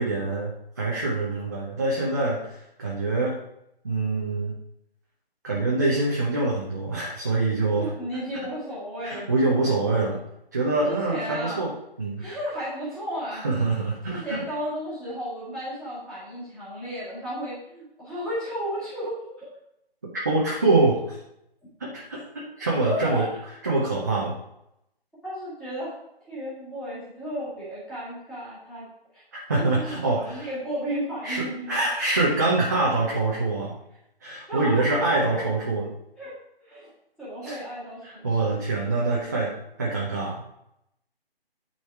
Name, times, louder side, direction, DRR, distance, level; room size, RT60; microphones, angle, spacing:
voice 1, 0.0-3.4 3.8-4.6 5.4-7.9 9.0-10.2 10.5-11.7 12.0-12.2 13.3-14.4 20.1-21.2 21.8-22.2 22.6-23.3 23.6-24.3 29.3-30.5 31.2-33.8 34.2-35.9 37.4-37.6 38.0-40.4, right 2 dB, 20° right, -4 dB, 0.7 m, -25 dB
voice 2, 7.8-9.3 10.8-11.7 12.2-13.4 14.1-19.5 22.8-23.3 25.2-25.9 26.3-28.8 29.1-29.2 29.6-31.7 34.5-35.4 36.2-36.3 36.6-36.9 37.2-38.3, equal, ahead, -11 dB, 1.8 m, -33 dB
9.5 x 4.1 x 4.7 m, 0.80 s
figure-of-eight pair, 160°, 31 cm